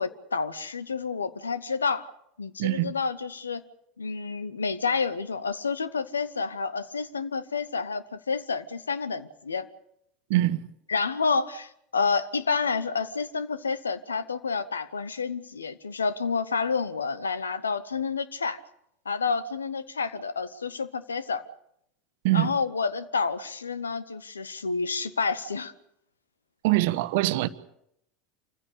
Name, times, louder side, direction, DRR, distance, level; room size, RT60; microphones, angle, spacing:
voice 1, 0.0-2.1 2.4-3.6 4.0-9.7 10.9-18.6 19.0-21.4 22.3-25.7, left 5 dB, 90° left, 1.0 m, -29 dB
voice 2, 2.6-2.9 10.3-10.6 22.2-22.5 26.6-27.5, right 17 dB, 65° right, 1.1 m, -23 dB
26.5 x 15.5 x 8.4 m
hypercardioid pair, 80°, 0 cm